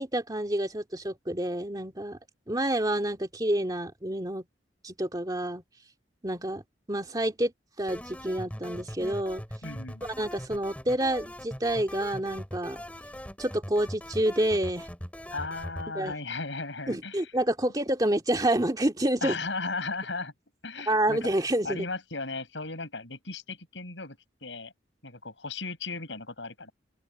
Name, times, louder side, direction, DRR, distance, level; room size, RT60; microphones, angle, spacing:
voice 1, 0.0-2.2 2.5-4.4 4.8-5.6 6.2-6.6 6.9-7.5 7.8-9.4 10.2-12.8 13.4-14.9 15.9-16.1 16.9-19.4 20.9-21.9, right 1 dB, 20° right, 2.2 m, -28 dB
sound 1, 7.9-15.9, equal, 10° left, 5.6 m, -41 dB
voice 2, 9.6-10.1 15.3-17.3 19.2-20.3 20.6-21.3 21.6-24.7 25.0-26.7, left 3 dB, 75° left, 6.8 m, -36 dB
open air
head